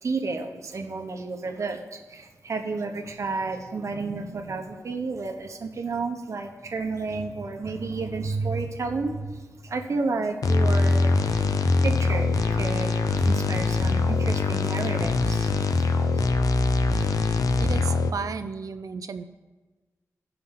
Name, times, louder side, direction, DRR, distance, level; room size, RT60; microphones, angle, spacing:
voice 1, 0.0-11.1 11.4-11.5 11.8-12.9 13.2-15.5 16.1-16.2, right 3 dB, 60° right, 4 dB, 1.0 m, -31 dB
sound 1, 10.4-18.1, left 3 dB, 80° left, 0.6 m, -23 dB
voice 2, 17.5-19.2, right 5 dB, 75° right, 10 dB, 0.6 m, -33 dB
16.0 x 5.8 x 3.8 m, 1.3 s
wide cardioid pair, 115°, 6 cm